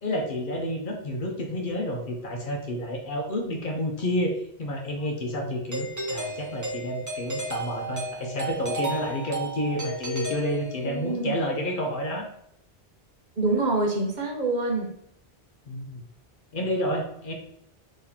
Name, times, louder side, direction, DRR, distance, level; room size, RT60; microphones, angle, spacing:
voice 1, 0.0-12.3 15.7-16.0 16.5-17.3, left 1 dB, 60° left, 2 dB, 0.8 m, -30 dB
Doorbell, 5.7-11.1, right 2 dB, 20° right, 0.6 m, -33 dB
voice 2, 10.8-11.4 13.4-15.0, right 2 dB, 50° right, 0 dB, 0.8 m, -26 dB
3.0 x 2.8 x 4.0 m, 0.74 s
omnidirectional pair, 1.0 m